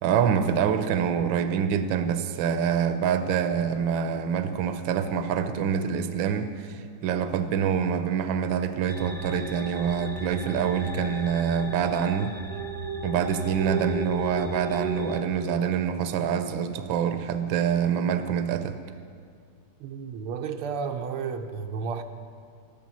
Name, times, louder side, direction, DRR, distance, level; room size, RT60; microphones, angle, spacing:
voice 1, 0.0-12.4 13.0-18.8, right 8 dB, 70° right, 9 dB, 1.4 m, -26 dB
sound 1, 8.9-15.2, right 2 dB, 15° right, 0.7 m, -34 dB
voice 2, 19.8-22.0, right 5 dB, 85° right, 5 dB, 1.7 m, -32 dB
14.0 x 12.5 x 6.2 m, 2.2 s
omnidirectional pair, 2.4 m